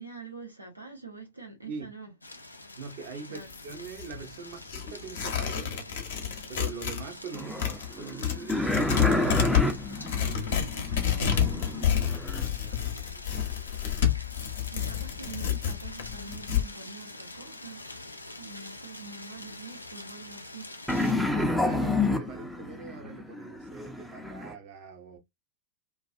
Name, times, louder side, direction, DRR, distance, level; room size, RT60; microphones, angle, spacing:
voice 1, 0.0-2.1 3.3-3.5 9.9-12.8 14.7-17.9 18.4-20.7, right 4 dB, 85° right, 0.9 m, -45 dB
sound 1, 2.2-21.1, left 2 dB, 85° left, 0.4 m, -46 dB
voice 2, 2.8-5.8 6.5-9.5 12.6-13.5 21.0-25.2, right 5 dB, 50° right, 0.8 m, -42 dB
Tearing, 3.4-7.0 7.3-16.7, left 9 dB, 55° left, 0.7 m, -29 dB
sound 2, 7.3-12.5 20.9-24.5, left 2 dB, ahead, 0.5 m, -29 dB
2.3 x 2.3 x 2.5 m
figure-of-eight pair, 90°, 0 cm